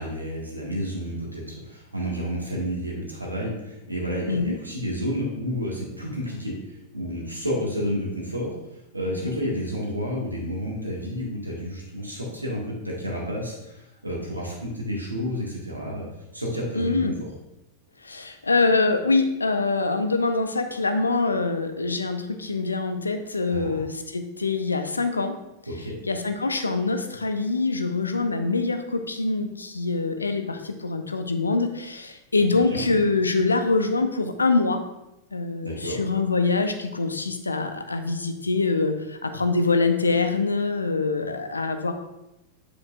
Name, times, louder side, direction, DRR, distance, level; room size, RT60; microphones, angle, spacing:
voice 1, 0.0-6.5 6.9-8.5 8.9-16.1 16.3-17.0 23.5-23.8 25.7-26.0 32.7-32.9 35.6-36.0, equal, 85° right, -3 dB, 1.9 m, -30 dB
voice 2, 16.8-17.1 18.0-25.3 26.1-34.8 35.3-41.9, left 3 dB, 80° left, 8 dB, 0.6 m, -24 dB
7.9 x 7.1 x 2.5 m, 0.91 s
figure-of-eight pair, 90°, 0 cm